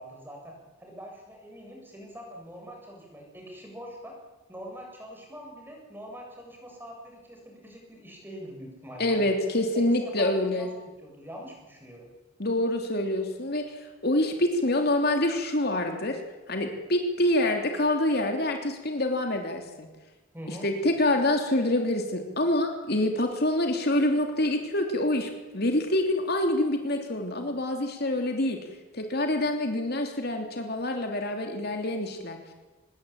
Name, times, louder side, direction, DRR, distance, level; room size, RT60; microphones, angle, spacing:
voice 1, 0.0-4.1 4.5-9.3 9.7-12.1 20.3-20.7, equal, 10° right, 0 dB, 7.4 m, -44 dB
voice 2, 9.0-10.7 12.4-16.2 16.5-19.9 20.5-28.6 28.9-32.4, left 1 dB, 50° left, 4 dB, 3.1 m, -26 dB
25.5 x 21.0 x 8.9 m, 1.2 s
head